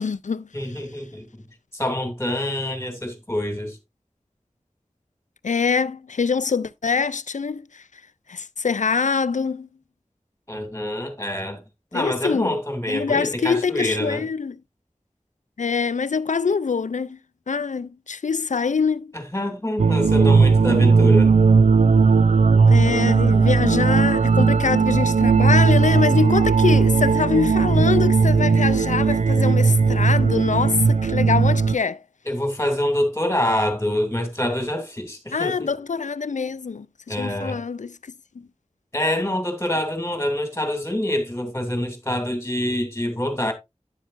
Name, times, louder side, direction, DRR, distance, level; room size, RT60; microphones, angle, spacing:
voice 1, 0.0-0.8 5.4-7.8 8.3-9.7 11.9-12.5 12.9-14.6 15.6-17.2 17.5-19.1 22.7-32.0 35.3-38.0, left 5 dB, 90° left, 0.4 m, -24 dB
voice 2, 0.5-1.4 1.7-3.8 10.5-11.6 11.9-14.3 19.1-21.3 32.3-35.7 37.1-37.6 38.9-43.5, left 1 dB, 20° left, 2.6 m, -26 dB
sound 1, 19.8-31.8, right 5 dB, 70° right, 0.4 m, -17 dB
10.5 x 7.3 x 2.5 m
wide cardioid pair, 50°, 12 cm